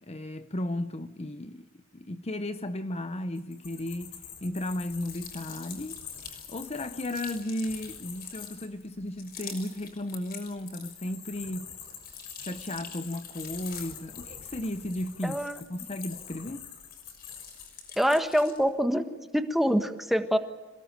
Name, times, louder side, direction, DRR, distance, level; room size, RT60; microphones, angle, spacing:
voice 1, 0.0-11.7 12.4-16.7, left 1 dB, 30° left, 0.8 m, -35 dB
sound 1, 3.4-8.7 10.5-17.7, left 8 dB, 60° left, 4.8 m, -45 dB
sound 2, 4.7-11.2 11.6-16.5 16.8-18.7, left 6 dB, 45° left, 6.1 m, -47 dB
voice 2, 15.2-15.5 18.0-20.4, equal, ahead, 1.5 m, -25 dB
27.0 x 18.5 x 9.0 m
head